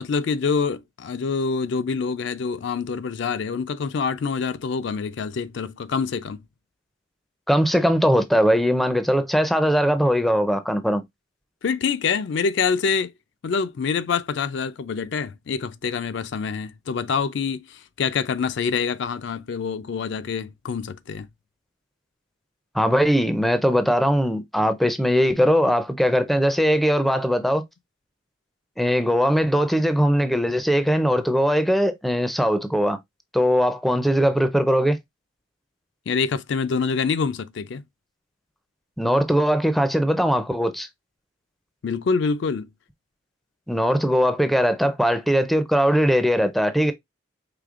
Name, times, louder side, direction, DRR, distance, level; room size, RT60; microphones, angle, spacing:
voice 1, 0.0-6.4 11.6-13.1 13.4-21.3 36.1-37.8 41.8-42.7, left 5 dB, 65° left, 0.4 m, -26 dB
voice 2, 7.5-11.0 22.7-27.6 28.8-33.0 33.3-35.0 39.0-40.9 43.7-46.9, equal, ahead, 0.4 m, -20 dB
5.0 x 3.2 x 2.4 m
head